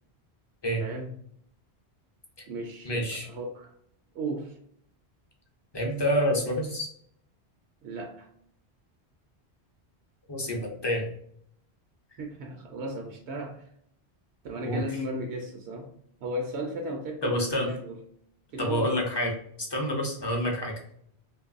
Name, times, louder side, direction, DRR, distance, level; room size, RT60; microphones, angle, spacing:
voice 1, 0.8-1.1 2.5-3.7 4.1-4.6 7.8-8.3 12.2-13.6 14.4-15.9 16.2-18.0 18.5-19.1, right 1 dB, 75° right, 2 dB, 0.8 m, -35 dB
voice 2, 2.8-3.3 5.7-6.9 10.3-11.1 14.6-14.8 17.2-17.7 18.6-19.3 19.7-20.8, equal, 35° left, 0 dB, 0.5 m, -27 dB
2.9 x 2.5 x 2.4 m, 0.66 s
omnidirectional pair, 1.1 m